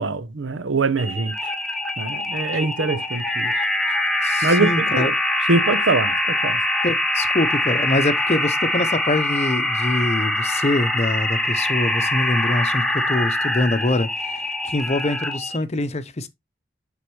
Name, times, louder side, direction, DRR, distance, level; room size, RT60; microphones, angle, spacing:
voice 1, 0.0-1.5 2.0-3.5 4.4-5.1 5.5-6.6, right 3 dB, 75° right, 0.7 m, -23 dB
sound 1, 1.0-15.6, left 1 dB, 5° left, 0.9 m, -23 dB
voice 2, 4.2-5.1 6.8-16.3, left 2 dB, 35° left, 0.7 m, -24 dB
9.4 x 3.9 x 3.1 m
head